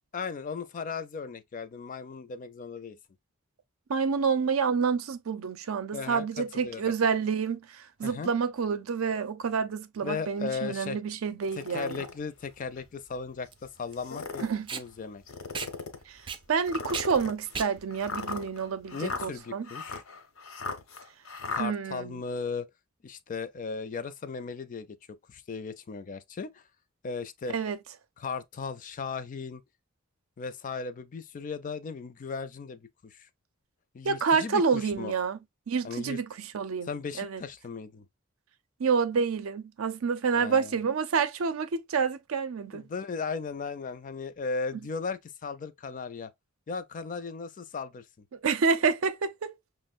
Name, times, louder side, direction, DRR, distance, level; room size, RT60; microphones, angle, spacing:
voice 1, 0.1-3.0 5.9-6.9 8.0-8.3 10.0-11.0 11.6-15.2 18.9-20.0 21.5-22.7 23.0-26.6 27.0-27.5 28.2-29.6 30.4-33.3 33.9-35.1 35.8-36.2 36.9-38.1 40.3-40.8 42.7-46.3 46.7-48.2, left 5 dB, 40° left, 0.4 m, -37 dB
voice 2, 3.9-12.1 14.4-14.7 16.1-16.2 16.5-19.7 21.6-22.2 27.5-27.8 34.0-35.4 35.7-36.9 37.2-37.4 38.8-42.8 48.4-49.5, right 5 dB, 85° right, 0.5 m, -28 dB
sound 1, 11.4-12.1 12.8-12.9 13.9-14.6 15.3-16.0 16.7-21.7, left 4 dB, 85° left, 0.9 m, -37 dB
Packing tape duct tape, 11.9-19.4, right 6 dB, 25° right, 0.4 m, -41 dB
5.9 x 2.1 x 2.4 m
head